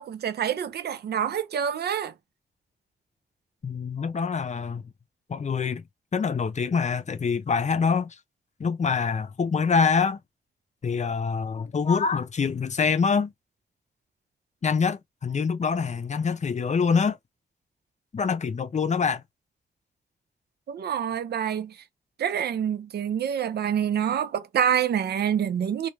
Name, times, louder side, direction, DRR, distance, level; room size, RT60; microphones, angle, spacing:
voice 1, 0.0-2.1 20.7-21.8 22.2-25.9, right 9 dB, 70° right, 0.4 m, -27 dB
voice 2, 3.6-4.8 5.3-5.8 6.1-8.2 8.6-10.2 10.8-13.3 14.6-17.2 18.1-19.2, left 5 dB, 45° left, 0.5 m, -25 dB
2.3 x 2.2 x 3.1 m
cardioid pair, 50°, 17 cm